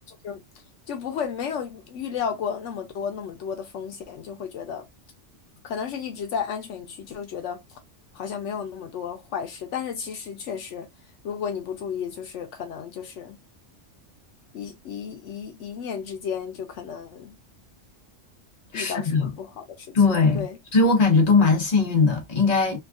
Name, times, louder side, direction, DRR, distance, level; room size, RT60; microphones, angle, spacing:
voice 1, 0.1-0.4 0.9-4.9 5.6-7.6 8.1-10.9 11.2-13.4 14.5-17.3 18.7-19.9 20.3-20.6, left 7 dB, 75° left, 0.9 m, -33 dB
voice 2, 18.7-19.3 19.9-20.4 20.7-22.8, left 4 dB, 35° left, 1.0 m, -19 dB
3.4 x 2.3 x 2.4 m
omnidirectional pair, 1.3 m